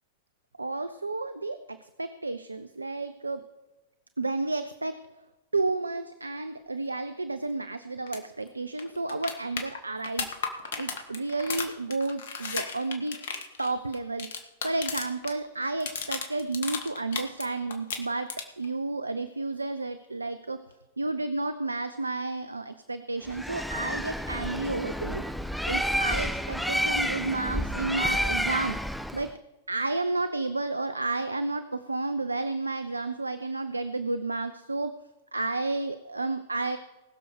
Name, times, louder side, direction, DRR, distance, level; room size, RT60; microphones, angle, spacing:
voice 1, 0.6-3.4 4.2-4.9 5.5-10.3 10.8-13.2 13.6-14.3 14.6-18.3 18.6-20.6 21.0-25.2 25.6-28.8 29.1-29.3 29.7-34.9 35.3-36.8, right 3 dB, 85° right, 11 dB, 0.6 m, -31 dB
sound 1, 8.1-8.2 8.5-8.6 8.8-15.3 15.6-17.4 17.7-18.7 20.7-20.8, left 6 dB, 60° left, 1.7 m, -35 dB
Bird, 23.3-29.3, equal, ahead, 0.6 m, -30 dB
20.0 x 6.9 x 4.7 m, 1.1 s
figure-of-eight pair, 95°, 0 cm